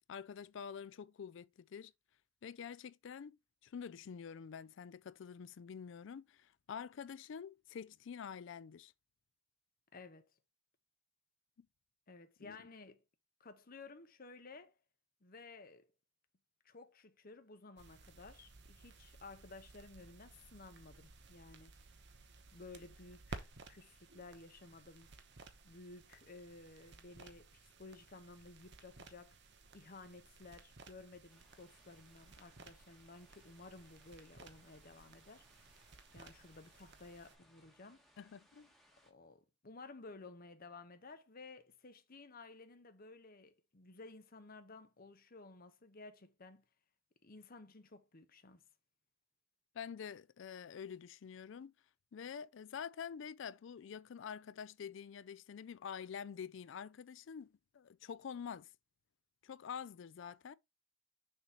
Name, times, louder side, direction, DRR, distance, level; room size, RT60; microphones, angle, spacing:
voice 1, 0.1-1.9 2.4-8.9 11.6-11.7 12.4-12.6 38.2-38.7 49.7-51.7 52.1-58.7 59.4-60.5, left 7 dB, 65° left, 0.4 m, -47 dB
voice 2, 9.9-10.3 12.1-13.0 13.4-14.8 15.2-15.9 16.6-21.8 22.5-25.1 25.6-29.4 29.7-38.1 39.0-46.6 47.2-48.7, left 3 dB, 45° left, 0.9 m, -55 dB
sound 1, 17.8-37.4, right 3 dB, 60° right, 0.9 m, -57 dB
sound 2, 31.3-39.1, equal, ahead, 1.2 m, -70 dB
6.6 x 3.0 x 5.1 m
head